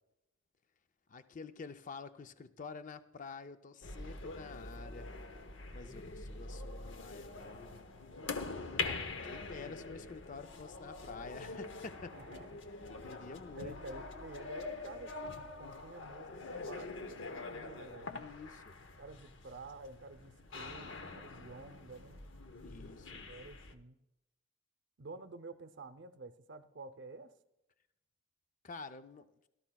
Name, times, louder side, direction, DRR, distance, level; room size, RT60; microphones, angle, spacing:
voice 1, 1.1-5.1 5.7-7.9 8.8-12.1 13.0-13.8 18.1-18.8 22.6-23.2 28.6-29.3, left 4 dB, 40° left, 10 dB, 0.5 m, -49 dB
sound 1, 3.8-23.7, left 3 dB, 65° left, 0.8 m, -44 dB
voice 2, 5.7-6.2 12.1-12.6 12.9-18.2 19.0-22.2 23.1-24.0 25.0-27.3, right 3 dB, 60° right, 10 dB, 0.6 m, -51 dB
17.5 x 12.5 x 2.3 m, 0.90 s
head